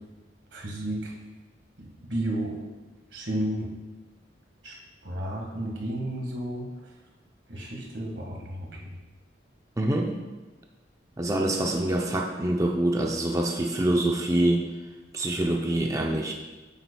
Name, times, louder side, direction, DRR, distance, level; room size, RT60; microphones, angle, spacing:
voice 1, 0.5-1.1 1.8-2.6 3.1-3.8 4.6-4.8 5.0-6.9 7.5-8.9, right 1 dB, 85° right, -1 dB, 1.7 m, -32 dB
voice 2, 9.8-10.2 11.2-14.7 15.1-16.3, right 1 dB, 20° right, 1 dB, 0.5 m, -25 dB
8.4 x 7.9 x 2.3 m, 1.2 s
head